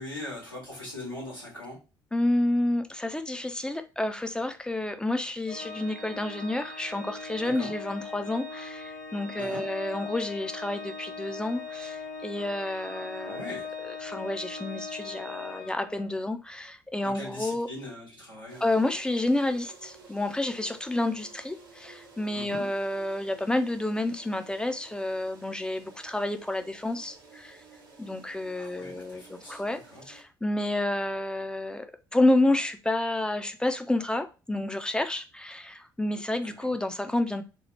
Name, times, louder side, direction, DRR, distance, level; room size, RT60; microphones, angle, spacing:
voice 1, 0.0-1.8 7.4-7.7 9.4-9.6 13.2-13.7 17.0-18.6 22.3-22.6 28.5-30.0 36.4-36.7, left 1 dB, 85° left, 1.3 m, -41 dB
voice 2, 2.1-13.4 14.0-17.7 18.6-27.6 28.0-29.8 30.1-31.9 32.1-37.4, left 1 dB, 5° left, 0.4 m, -29 dB
Organ, 5.5-16.2, left 4 dB, 40° left, 0.9 m, -40 dB
sound 1, 18.5-30.2, right 4 dB, 80° right, 0.6 m, -53 dB
2.9 x 2.1 x 3.2 m
figure-of-eight pair, 45°, 11 cm